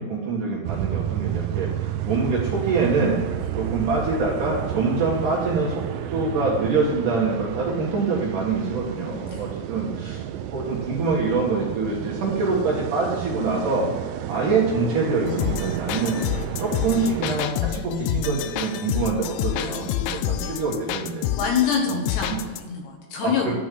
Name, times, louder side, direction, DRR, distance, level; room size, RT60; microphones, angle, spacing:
voice 1, 0.0-3.2 3.5-10.2 10.5-13.9 14.3-16.1 16.6-21.3 21.9-22.0 22.3-22.4 23.2-23.5, right 4 dB, 55° right, -4 dB, 2.6 m, -25 dB
sound 1, 0.6-17.4, right 11 dB, 85° right, 2.6 m, -31 dB
sound 2, 15.3-22.6, left 11 dB, 90° left, 2.4 m, -28 dB
voice 2, 21.4-23.5, left 7 dB, 65° left, 1 dB, 3.4 m, -25 dB
11.5 x 6.1 x 7.6 m, 1.3 s
omnidirectional pair, 5.6 m